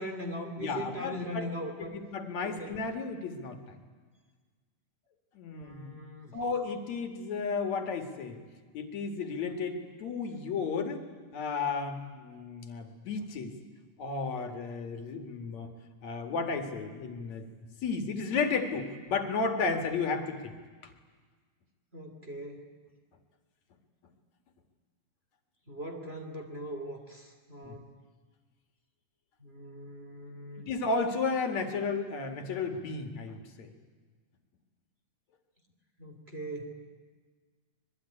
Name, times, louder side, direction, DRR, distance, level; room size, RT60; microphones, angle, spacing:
voice 1, 0.0-1.9 2.4-2.8 5.5-6.3 21.9-22.6 25.7-27.8 29.4-30.7 36.0-36.9, equal, 20° right, 2 dB, 2.8 m, -40 dB
voice 2, 0.6-1.5 1.8-3.6 5.4-6.0 6.3-8.4 8.7-11.0 11.3-13.5 14.0-15.7 16.0-20.5 27.6-27.8 30.7-33.7, left 4 dB, 60° left, 6 dB, 3.1 m, -33 dB
25.5 x 21.5 x 9.9 m, 1.5 s
omnidirectional pair, 3.6 m